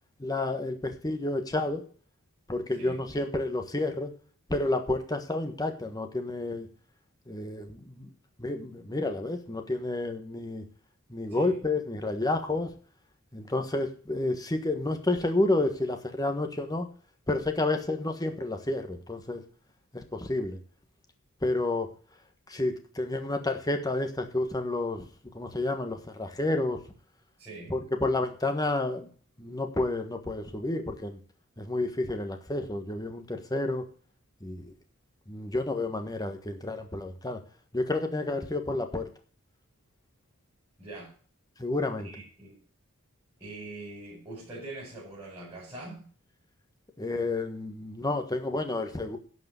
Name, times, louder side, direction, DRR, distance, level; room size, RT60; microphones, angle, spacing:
voice 1, 0.2-1.8 2.5-4.1 4.5-6.7 7.3-8.1 8.4-10.6 11.1-12.7 13.3-16.9 17.3-19.4 19.9-20.6 21.4-21.9 22.5-25.0 25.3-26.8 27.7-29.1 29.4-31.2 31.6-33.9 34.4-34.7 35.3-37.4 37.7-39.1 41.6-42.1 47.0-49.2, left 2 dB, 15° left, 5 dB, 1.3 m, -30 dB
voice 2, 27.4-27.8 40.8-41.1 42.0-42.6 43.4-46.1, right 2 dB, 15° right, -8 dB, 5.1 m, -43 dB
11.5 x 5.0 x 8.0 m, 0.43 s
head